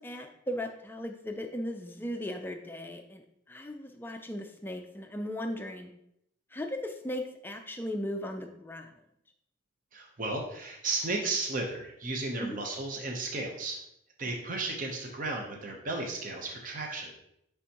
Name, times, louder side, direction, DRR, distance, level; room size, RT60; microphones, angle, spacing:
voice 1, 0.0-3.2 3.5-5.9 6.5-8.8 12.4-12.6, left 1 dB, 10° left, 4 dB, 0.4 m, -37 dB
voice 2, 9.9-13.8 14.2-17.2, right 3 dB, 40° right, 1 dB, 0.8 m, -34 dB
9.6 x 3.5 x 2.9 m, 0.78 s
head